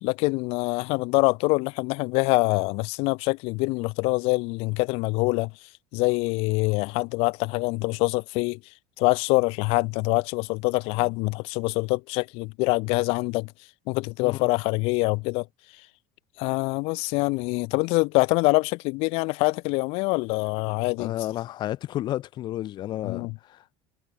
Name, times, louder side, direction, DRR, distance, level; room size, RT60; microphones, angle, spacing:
voice 1, 0.0-5.5 5.9-8.6 9.0-13.5 13.9-15.5 16.4-21.1 23.0-23.4, left 26 dB, 55° left, 0.5 m, -25 dB
voice 2, 21.0-23.6, left 13 dB, 35° left, 1.6 m, -32 dB
cardioid pair, 155°, 12 cm